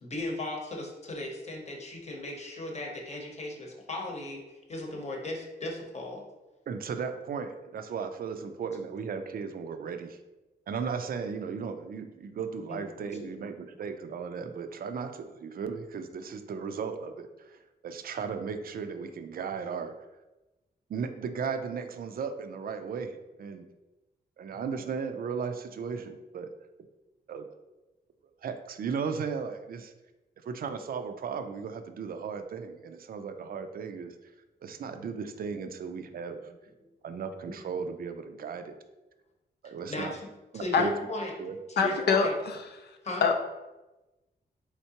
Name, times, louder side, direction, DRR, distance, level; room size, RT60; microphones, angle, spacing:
voice 1, 0.0-4.4 4.7-6.2 12.7-12.8 13.2-13.3 37.5-37.6 39.9-41.3 41.7-42.4 43.0-43.2, left 2 dB, 40° left, 1 dB, 0.8 m, -36 dB
voice 2, 6.7-10.2 10.7-19.9 20.9-23.7 24.4-26.5 27.3-27.5 28.4-29.9 30.4-34.2 34.6-36.5 37.0-38.8 39.6-40.1 40.5-40.9 41.4-41.6 41.8-42.0, right 6 dB, 60° right, 8 dB, 0.4 m, -36 dB
voice 3, 41.8-42.3 43.2-43.3, left 5 dB, 80° left, 4 dB, 0.4 m, -23 dB
4.4 x 3.6 x 2.8 m, 1.1 s
wide cardioid pair, 145°, 17 cm